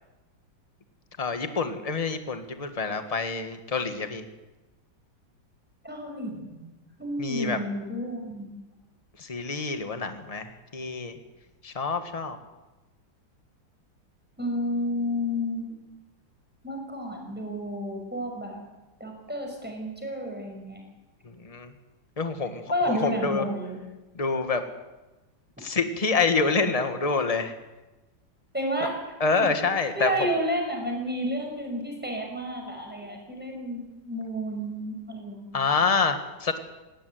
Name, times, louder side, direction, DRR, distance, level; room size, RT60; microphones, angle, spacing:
voice 1, 1.2-4.2 7.2-7.6 9.2-11.1 11.6-12.4 21.2-21.7 22.2-23.4 24.1-24.6 25.6-27.5 28.8-28.9 29.2-30.1 35.5-36.6, left 4 dB, 20° left, 8 dB, 1.5 m, -27 dB
voice 2, 5.8-6.6 7.0-8.6 14.4-15.7 16.6-18.6 19.0-20.8 22.7-23.8 28.5-29.0 29.4-29.5 29.8-35.7, equal, 5° right, 1 dB, 5.8 m, -31 dB
18.5 x 16.5 x 9.5 m, 1.1 s
omnidirectional pair, 2.1 m